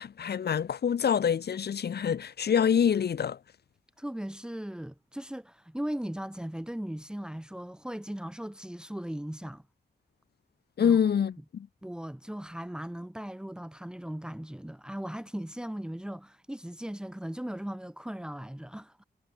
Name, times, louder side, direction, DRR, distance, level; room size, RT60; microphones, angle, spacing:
voice 1, 0.0-3.4 10.8-11.7, left 8 dB, 70° left, 1.0 m, -26 dB
voice 2, 4.0-9.6 10.8-11.0 11.8-19.0, equal, 5° right, 2.6 m, -38 dB
wide cardioid pair, 165°, 18 cm